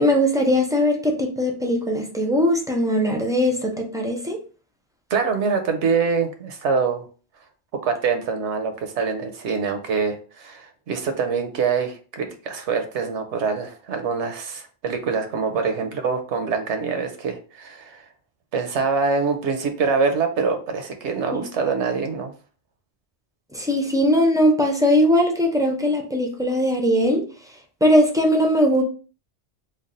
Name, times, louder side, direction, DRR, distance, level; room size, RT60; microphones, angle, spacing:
voice 1, 0.0-4.4 21.3-21.4 23.5-27.3 27.8-28.8, equal, 5° right, 1 dB, 0.3 m, -20 dB
voice 2, 5.1-7.1 7.8-18.1 18.5-22.3, right 5 dB, 85° right, 7 dB, 1.0 m, -24 dB
3.2 x 2.3 x 3.7 m, 0.37 s
omnidirectional pair, 1.2 m